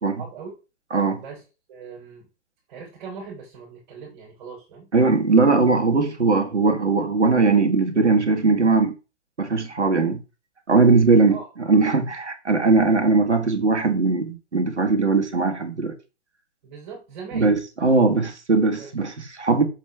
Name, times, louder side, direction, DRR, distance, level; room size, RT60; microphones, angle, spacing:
voice 1, 0.2-0.5 1.1-1.4 1.7-2.3 2.7-4.9 11.3-11.5 16.6-17.5 18.7-18.9, right 5 dB, 40° right, 3.3 m, -39 dB
voice 2, 4.9-8.9 9.4-10.2 10.7-15.9 17.3-19.6, right 3 dB, 85° right, 1.6 m, -20 dB
6.4 x 5.3 x 3.4 m
figure-of-eight pair, 125°, 34 cm